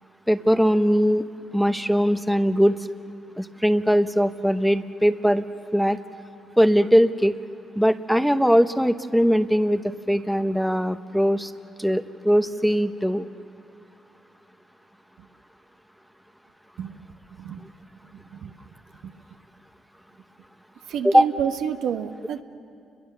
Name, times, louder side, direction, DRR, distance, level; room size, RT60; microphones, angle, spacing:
voice 1, 0.3-1.2 1.5-2.8 3.4-5.4 5.7-6.0 6.6-7.4 7.8-11.5 11.8-13.3 21.0-21.3, equal, ahead, 10 dB, 0.8 m, -20 dB
voice 2, 18.1-18.5 19.0-19.1 20.9-22.4, right 8 dB, 80° right, 7 dB, 1.1 m, -29 dB
29.5 x 22.0 x 6.8 m, 2.5 s
cardioid pair, 90°, 0 cm